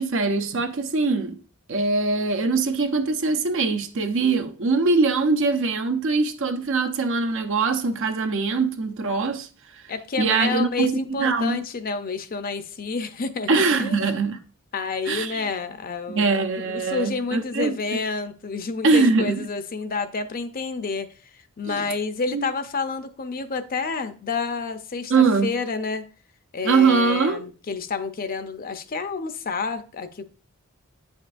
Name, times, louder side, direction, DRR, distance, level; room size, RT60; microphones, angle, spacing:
voice 1, 0.0-1.4 1.7-9.5 10.2-11.6 13.5-14.4 15.1-15.4 16.1-17.8 18.8-19.5 21.7-21.8 22.3-22.5 25.1-25.5 26.6-27.4, right 4 dB, 65° right, 0.7 m, -22 dB
voice 2, 9.9-14.1 14.7-26.0 26.5-30.2, left 4 dB, 45° left, 0.6 m, -29 dB
8.8 x 5.2 x 2.5 m
head